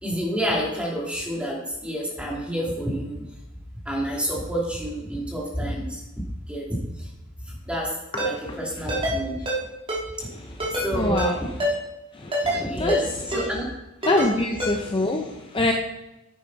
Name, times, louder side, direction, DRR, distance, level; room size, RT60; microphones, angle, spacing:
voice 1, 0.0-3.2 3.8-6.0 6.5-7.1 7.4-9.4 10.2-10.3 10.8-11.2 12.5-13.7, equal, 5° right, -3 dB, 2.8 m, -29 dB
voice 2, 8.1-8.6 10.3-11.4 12.1-13.0 14.0-15.7, left 2 dB, 25° left, 2 dB, 0.7 m, -26 dB
Ringtone, 8.2-8.3 8.9-9.2 9.5-9.6 9.9-10.0 10.6-10.9 11.2-11.3 11.6-11.7 12.3-12.6 12.9-13.0 13.3-13.4 14.0-14.3 14.6-14.7, equal, 25° right, 3.0 m, -25 dB
10.5 x 8.8 x 4.1 m, 0.97 s
head